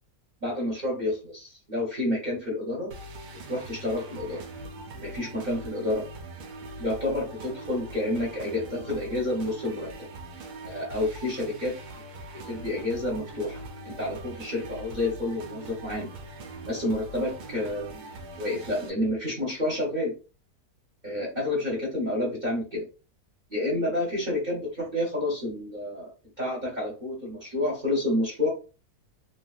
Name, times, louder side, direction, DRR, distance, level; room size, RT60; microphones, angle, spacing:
voice 1, 0.4-2.9 3.2-4.4 4.9-6.1 6.8-10.1 10.6-11.7 12.4-16.1 16.6-18.1 18.4-20.1 21.0-22.8 23.5-26.1 26.4-28.5, left 1 dB, 35° right, -3 dB, 1.0 m, -29 dB
sound 1, 2.9-18.9, right 1 dB, 80° right, 1.1 m, -42 dB
3.0 x 2.9 x 2.4 m, 0.33 s
omnidirectional pair, 1.6 m